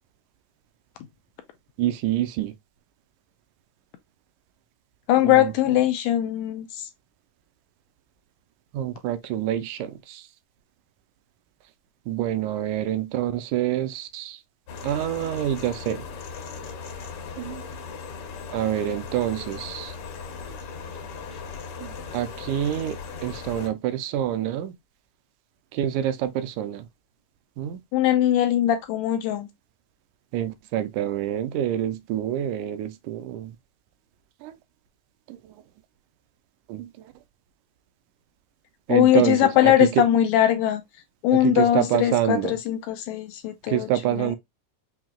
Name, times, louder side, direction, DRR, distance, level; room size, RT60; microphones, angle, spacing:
voice 1, 1.8-2.5 5.2-5.5 8.7-10.2 12.1-14.4 14.8-16.0 17.4-17.6 18.5-19.9 21.8-24.7 25.7-26.9 27.6-27.8 30.3-33.5 34.4-34.5 35.3-35.4 36.7-36.9 38.9-40.0 41.3-42.6 43.7-44.4, right 12 dB, 80° right, 1.9 m, -27 dB
voice 2, 5.1-6.7 27.9-29.5 38.9-40.8 41.2-44.3, left 12 dB, 80° left, 1.7 m, -21 dB
sound 1, 14.7-23.7, left 5 dB, 65° left, 1.5 m, -38 dB
5.8 x 2.8 x 2.3 m
omnidirectional pair, 3.6 m